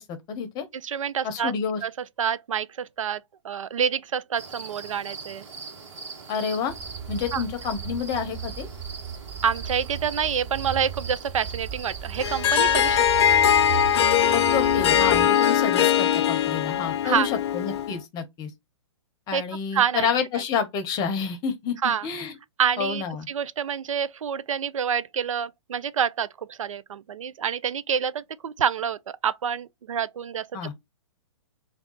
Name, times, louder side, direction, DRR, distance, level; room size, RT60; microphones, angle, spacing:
voice 1, 0.0-0.7 1.2-1.8 6.3-6.7 7.1-8.7 14.3-18.5 19.3-22.3 22.8-23.3 30.5-30.7, left 6 dB, 25° left, 0.8 m, -29 dB
voice 2, 0.7-1.5 1.8-1.9 2.2-5.5 7.3-7.4 9.4-13.0 17.0-17.3 19.3-19.4 19.7-20.1 21.8-22.1 22.6-30.5, right 8 dB, 85° right, 0.4 m, -27 dB
sound 1, 4.4-15.6, right 4 dB, 65° right, 1.2 m, -41 dB
sound 2, 6.7-15.3, right 8 dB, 30° right, 0.6 m, -36 dB
Harp, 12.2-18.0, left 9 dB, 55° left, 0.5 m, -21 dB
3.5 x 2.3 x 3.8 m
hypercardioid pair, 135°, 16 cm